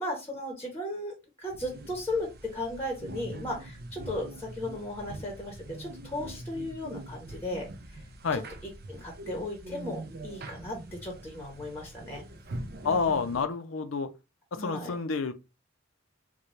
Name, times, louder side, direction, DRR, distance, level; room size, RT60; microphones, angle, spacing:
voice 1, 0.0-8.0 8.3-8.4 8.9-12.2 12.8-13.2 14.6-14.9, left 1 dB, 10° left, 0.9 m, -36 dB
sound 1, 1.5-13.4, right 1 dB, 50° right, 0.5 m, -43 dB
voice 2, 12.8-14.1 14.5-15.3, left 5 dB, 85° left, 0.5 m, -29 dB
4.1 x 2.2 x 3.1 m
head